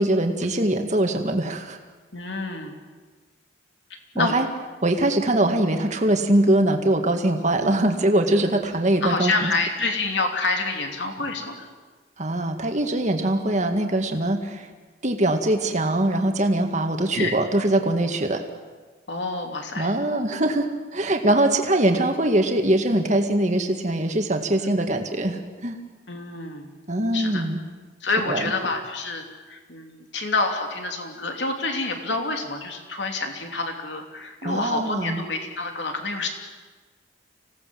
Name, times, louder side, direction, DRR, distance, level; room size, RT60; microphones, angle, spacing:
voice 1, 0.0-1.8 4.2-4.5 4.8-9.5 12.2-14.7 15.0-18.4 19.8-20.7 20.9-25.8 26.9-27.6 28.3-28.5 34.4-35.2, right 1 dB, 40° right, 4 dB, 1.9 m, -22 dB
voice 2, 2.1-2.7 3.9-4.3 9.0-11.7 17.1-17.3 19.1-19.9 24.6-24.7 26.1-26.7 27.1-27.4 28.0-36.3, left 3 dB, 70° left, 3 dB, 3.0 m, -28 dB
26.0 x 17.5 x 7.7 m, 1.4 s
head